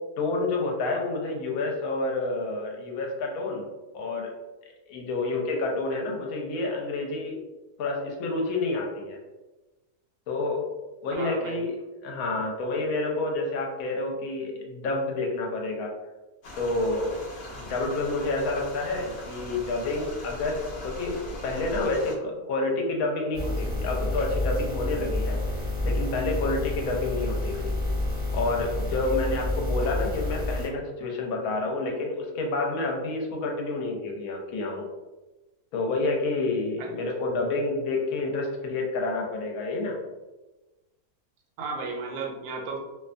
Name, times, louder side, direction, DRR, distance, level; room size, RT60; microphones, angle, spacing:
voice 1, 0.2-3.7 3.9-4.3 4.9-7.4 7.8-9.2 10.3-10.6 11.0-15.9 16.5-17.2 17.5-25.4 25.8-27.7 28.3-34.9 35.7-40.0, left 2 dB, 70° left, 0 dB, 1.0 m, -29 dB
voice 2, 11.2-11.6 36.8-36.9 41.6-42.8, right 4 dB, 75° right, 0 dB, 1.0 m, -34 dB
sound 1, 16.4-22.1, left 1 dB, 90° left, 0.4 m, -40 dB
sound 2, 23.3-30.7, left 2 dB, 30° right, 0.7 m, -29 dB
2.6 x 2.2 x 2.4 m, 1.1 s
omnidirectional pair, 1.7 m